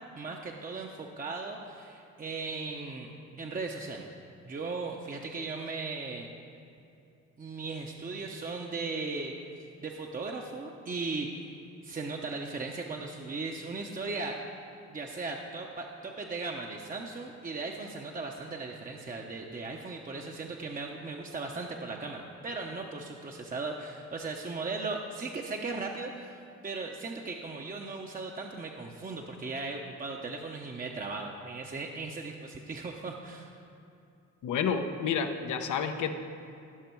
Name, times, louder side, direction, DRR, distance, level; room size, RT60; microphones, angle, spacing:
voice 1, 0.2-3.1 3.4-4.1 4.4-6.3 7.4-9.3 9.8-11.6 11.8-14.4 14.9-33.5, right 3 dB, 30° right, 1 dB, 0.8 m, -37 dB
voice 2, 34.4-36.1, left 6 dB, 75° left, 6 dB, 0.9 m, -30 dB
17.0 x 5.9 x 4.6 m, 2.7 s
cardioid pair, 90°, 30 cm